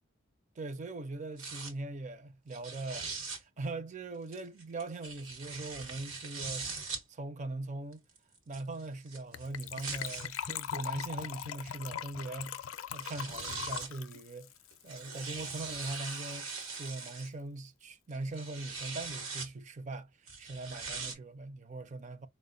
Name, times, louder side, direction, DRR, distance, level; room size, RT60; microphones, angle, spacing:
voice 1, 0.6-6.7 7.1-8.0 8.5-14.5 14.8-16.5 16.7-20.1 20.4-22.3, right 2 dB, 35° right, 0.4 m, -41 dB
sound 1, 1.4-1.7 2.5-3.4 4.3-7.0 7.9-10.3 11.1-11.2 12.6-12.7 13.0-14.0 14.7-17.3 18.1-19.5 20.3-21.1, right 4 dB, 85° right, 1.0 m, -41 dB
Gurgling / Trickle dribble / Fill (with liquid), 9.3-15.6 15.8-15.9 16.1-16.3 16.6-16.7, left 9 dB, 70° left, 0.4 m, -41 dB
4.2 x 2.1 x 2.5 m
head